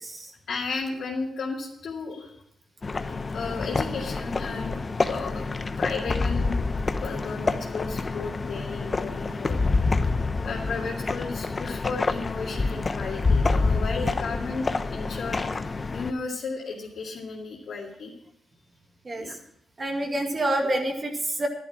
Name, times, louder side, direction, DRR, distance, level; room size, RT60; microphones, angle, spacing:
voice 1, 0.5-2.3 3.1-5.5 5.8-6.7 7.0-9.6 10.4-15.6 15.9-18.1 19.2-19.4, left 4 dB, 70° left, -4 dB, 2.3 m, -34 dB
sound 1, 2.8-16.1, left 3 dB, 35° left, 0.9 m, -27 dB
voice 2, 19.0-19.4 19.8-21.5, right 1 dB, 35° right, 2 dB, 2.1 m, -27 dB
11.0 x 11.0 x 6.1 m, 0.76 s
cardioid pair, 85°, 0 cm